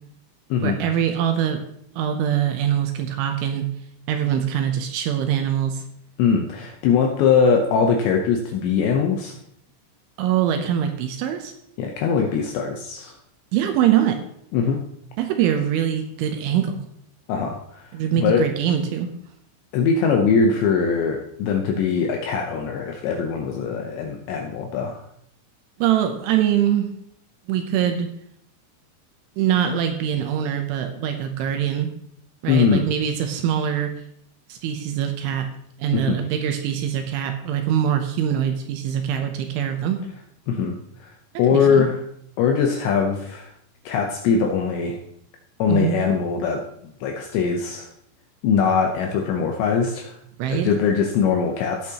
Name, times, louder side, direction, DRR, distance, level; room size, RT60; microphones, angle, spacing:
voice 1, 0.6-1.7 2.0-3.7 4.1-5.8 10.2-11.5 13.5-14.3 15.2-16.9 17.9-19.1 25.8-26.9 27.5-28.1 29.4-31.9 32.4-34.0 34.5-35.5 35.8-40.1 41.5-41.9 45.7-46.0 50.4-50.7, right 9 dB, 80° right, 6 dB, 2.8 m, -23 dB
voice 2, 6.2-9.3 11.8-13.1 14.5-14.8 17.3-18.5 19.7-25.0 32.5-32.9 35.9-36.2 40.5-41.1 41.4-42.0 42.4-43.5 43.9-45.0 45.6-46.6 47.0-47.9 48.4-50.2 50.5-51.9, left 6 dB, 80° left, 2 dB, 2.6 m, -21 dB
17.0 x 8.1 x 2.9 m, 0.72 s
omnidirectional pair, 6.0 m